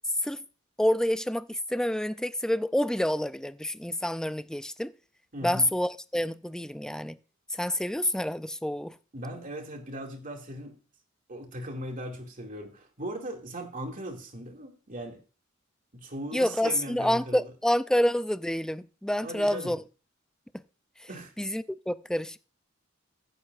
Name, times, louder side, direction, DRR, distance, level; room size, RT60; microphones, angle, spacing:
voice 1, 0.8-4.9 5.4-7.2 7.6-9.0 16.3-19.8 21.4-22.4, left 1 dB, 5° left, 0.4 m, -28 dB
voice 2, 5.3-5.7 9.1-10.8 11.3-15.2 15.9-17.5 19.2-19.8 21.1-21.3, equal, 40° right, 2.3 m, -38 dB
15.0 x 10.0 x 2.5 m
head